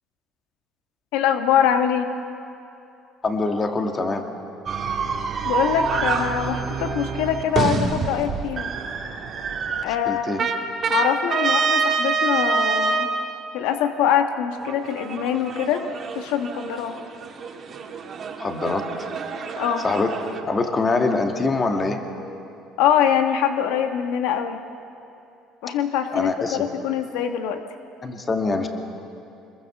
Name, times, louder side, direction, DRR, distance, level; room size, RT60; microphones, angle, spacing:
voice 1, 1.1-2.1 5.4-8.7 9.8-10.5 10.9-13.1 13.5-15.8 16.1-17.0 19.6-19.8 22.8-24.6 25.6-27.6, left 9 dB, 85° left, 6 dB, 1.3 m, -23 dB
voice 2, 3.2-4.2 10.1-10.4 18.4-18.9 19.8-20.1 20.5-22.0 26.1-26.6 28.0-28.7, left 3 dB, 25° left, 4 dB, 2.1 m, -24 dB
sound 1, 4.7-9.8 10.4-13.1 14.6-20.4, right 5 dB, 40° right, 2.1 m, -26 dB
25.5 x 22.0 x 7.2 m, 2.7 s
cardioid pair, 120°, 0 cm